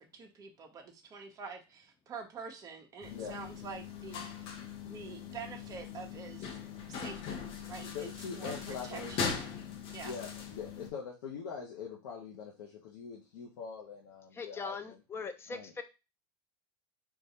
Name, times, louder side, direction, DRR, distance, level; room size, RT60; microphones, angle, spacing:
voice 1, 0.0-4.5 4.8-6.6 6.9-7.4 7.7-9.3 9.9-10.1, right 5 dB, 25° right, 2 dB, 0.7 m, -46 dB
sound 1, 3.0-10.9, left 6 dB, 45° left, 0.8 m, -40 dB
voice 2, 3.1-3.5 7.9-9.4 10.0-15.0 15.5-15.7, left 6 dB, 85° left, -3 dB, 0.8 m, -43 dB
voice 3, 14.3-15.8, left 4 dB, 20° left, 8 dB, 0.4 m, -40 dB
3.6 x 2.4 x 2.8 m, 0.28 s
supercardioid pair, 130°, 13 cm